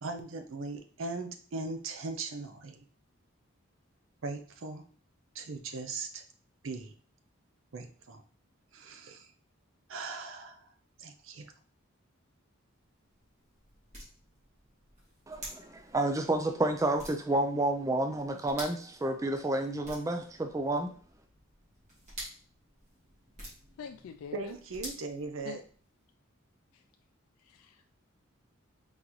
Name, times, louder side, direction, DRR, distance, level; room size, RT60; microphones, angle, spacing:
voice 1, 0.0-2.9 4.2-4.8 5.3-6.3 6.6-6.9 7.7-8.2 8.7-9.3 9.9-10.7 11.0-11.5 24.3-25.6, right 3 dB, 70° right, 7 dB, 0.6 m, -39 dB
sound 1, 12.7-25.9, equal, 35° right, 1.8 m, -50 dB
voice 2, 15.3-20.9, right 1 dB, 15° right, 5 dB, 0.3 m, -30 dB
voice 3, 23.8-24.5 25.4-25.6 26.7-26.8 27.4-27.9, left 7 dB, 80° left, 5 dB, 0.3 m, -45 dB
3.9 x 3.8 x 3.0 m, 0.44 s
head